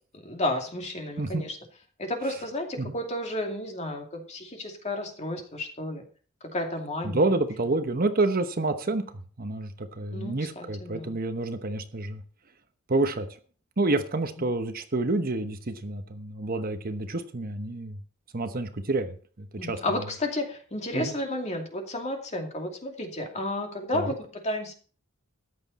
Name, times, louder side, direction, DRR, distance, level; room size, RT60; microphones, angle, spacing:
voice 1, 0.1-1.6 2.0-6.0 6.4-7.3 10.1-11.2 19.6-24.7, left 1 dB, 35° left, 3 dB, 2.5 m, -32 dB
voice 2, 7.0-9.0 9.4-12.2 12.9-13.3 13.8-18.0 18.3-19.8 20.9-21.1 23.9-24.1, right 2 dB, 45° right, 8 dB, 1.0 m, -28 dB
14.0 x 9.8 x 4.2 m, 0.41 s
head